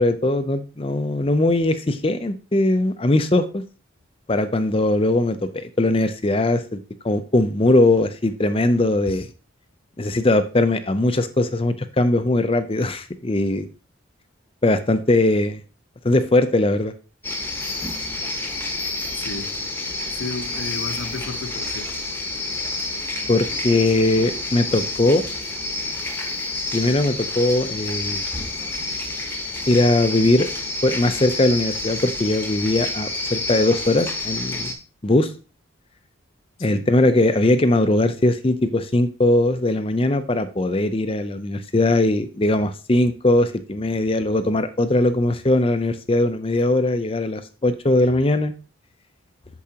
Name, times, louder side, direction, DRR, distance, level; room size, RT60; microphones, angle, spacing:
voice 1, 0.0-3.6 4.3-6.8 7.0-9.3 10.0-13.7 14.6-15.6 16.0-16.9 23.3-25.2 26.7-28.2 29.7-30.5 30.8-34.7 35.0-35.3 36.6-48.5, left 2 dB, 25° left, 0.5 m, -20 dB
sound 1, 17.2-34.7, left 2 dB, 10° left, 1.0 m, -29 dB
voice 2, 19.1-19.5 20.1-21.9 36.7-36.9, left 3 dB, 75° left, 0.9 m, -33 dB
8.4 x 6.9 x 2.9 m
head